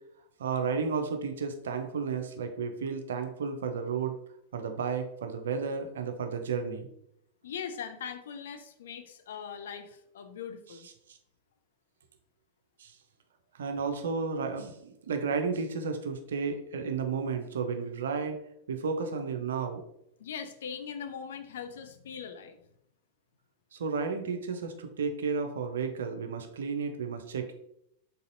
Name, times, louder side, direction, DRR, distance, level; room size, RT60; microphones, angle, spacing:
voice 1, 0.4-4.2 4.5-6.9 11.1-11.2 12.8-12.9 13.5-18.4 18.7-19.8 23.7-27.5, right 5 dB, 65° right, 6 dB, 0.5 m, -32 dB
voice 2, 7.4-10.9 20.2-22.6, left 7 dB, 60° left, 7 dB, 0.4 m, -40 dB
4.0 x 4.0 x 2.5 m, 0.75 s
figure-of-eight pair, 90°, 0 cm